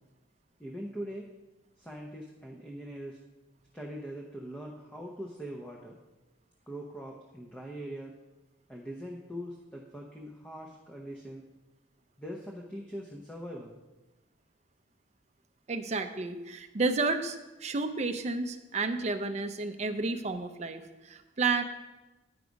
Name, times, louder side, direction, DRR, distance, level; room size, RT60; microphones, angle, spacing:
voice 1, 0.6-1.3 1.8-3.2 3.7-6.0 6.7-8.2 8.7-11.4 12.2-13.8, equal, 5° left, -2 dB, 0.6 m, -42 dB
voice 2, 15.7-21.6, right 3 dB, 35° right, 8 dB, 0.5 m, -31 dB
9.5 x 4.8 x 5.1 m, 1.1 s
head